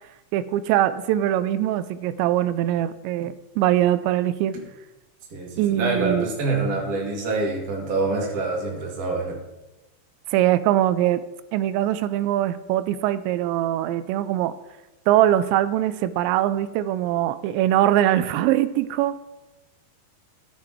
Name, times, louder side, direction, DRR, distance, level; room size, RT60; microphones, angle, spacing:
voice 1, 0.3-4.6 5.6-6.3 10.3-11.2 11.5-14.5 15.1-19.2, right 12 dB, 85° right, 14 dB, 2.8 m, -22 dB
voice 2, 5.3-9.4, right 3 dB, 30° right, -1 dB, 1.8 m, -26 dB
13.5 x 7.8 x 4.5 m, 1.0 s
omnidirectional pair, 5.0 m